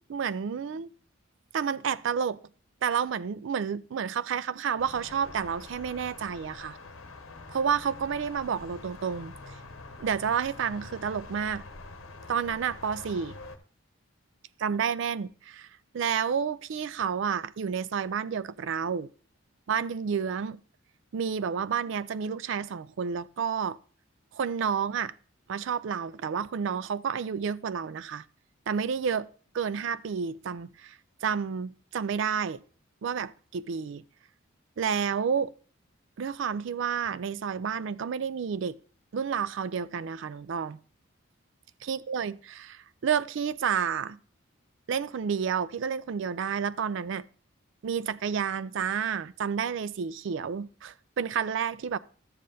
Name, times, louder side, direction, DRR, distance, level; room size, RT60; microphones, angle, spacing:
voice 1, 0.1-0.9 1.5-2.4 2.8-6.8 7.5-9.3 10.0-11.6 12.3-13.4 14.6-15.7 15.9-19.1 19.7-20.6 21.1-23.8 24.3-25.1 25.5-28.2 28.7-29.3 29.5-32.6 33.0-34.0 34.8-35.5 36.2-38.8 39.1-40.8 41.8-44.2 44.9-47.2 47.8-52.0, right 7 dB, 60° right, 0.3 m, -30 dB
sound 1, 4.8-13.6, left 3 dB, 75° left, 0.9 m, -45 dB
12.5 x 7.5 x 2.6 m
head